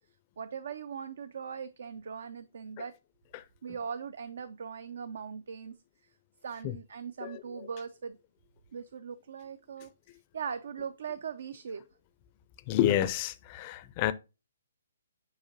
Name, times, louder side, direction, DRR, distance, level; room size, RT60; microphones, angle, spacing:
voice 1, 0.4-2.9 3.6-5.7 6.4-8.2 8.7-9.9 10.3-11.8, right 6 dB, 55° right, 0.4 m, -40 dB
voice 2, 7.2-7.7 12.7-14.1, left 12 dB, 30° left, 0.4 m, -29 dB
7.1 x 4.9 x 2.7 m
figure-of-eight pair, 130°, 0 cm